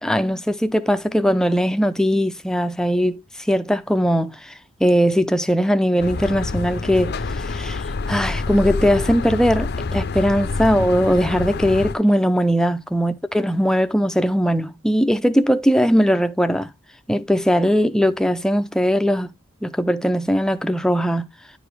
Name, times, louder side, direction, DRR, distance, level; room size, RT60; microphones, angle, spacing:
voice 1, 0.0-3.2 3.5-4.5 4.8-7.8 8.1-16.7 17.1-19.3 19.6-21.3, equal, 5° left, 0.5 m, -19 dB
sound 1, 6.0-11.9, left 3 dB, 50° left, 0.6 m, -27 dB
10.0 x 5.0 x 3.3 m
head